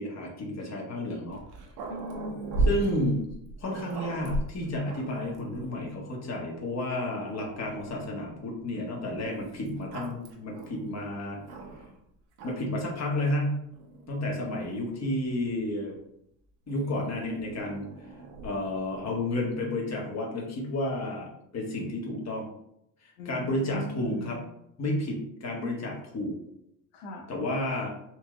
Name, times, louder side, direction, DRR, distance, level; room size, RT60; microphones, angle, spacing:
voice 1, 0.0-1.4 2.7-3.2 3.6-11.4 12.4-13.6 14.1-15.9 16.7-17.9 18.4-22.5 23.0-24.4 24.8-26.4 27.3-27.9, left 1 dB, 35° left, -1 dB, 1.4 m, -31 dB
Growling, 1.3-5.9 6.6-6.7 7.0-8.1 9.2-12.0 12.3-12.9 13.7-15.6 16.7-19.2, right 2 dB, 70° right, 1.1 m, -37 dB
voice 2, 1.9-2.7 23.2-24.5 26.9-27.3, left 1 dB, 80° left, 1 dB, 0.8 m, -40 dB
4.5 x 3.0 x 2.3 m, 0.75 s
supercardioid pair, 85°, 48 cm